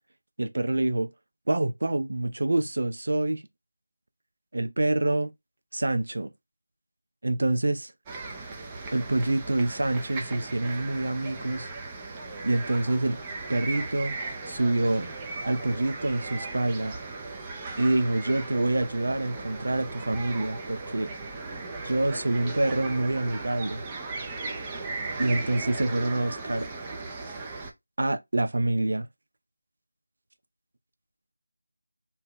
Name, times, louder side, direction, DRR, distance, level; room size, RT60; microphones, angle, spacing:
voice 1, 0.4-1.1 1.5-3.4 4.5-5.3 5.7-6.3 7.2-7.9 8.9-11.7 12.4-13.2 13.5-14.1 14.4-15.1 15.4-16.9 17.8-21.1 21.8-23.8 25.2-26.7 28.0-29.1, right 2 dB, 70° right, 0.5 m, -26 dB
sound 1, 8.1-27.7, right 3 dB, 15° right, 0.4 m, -37 dB
2.7 x 2.0 x 3.5 m
figure-of-eight pair, 170°, 0 cm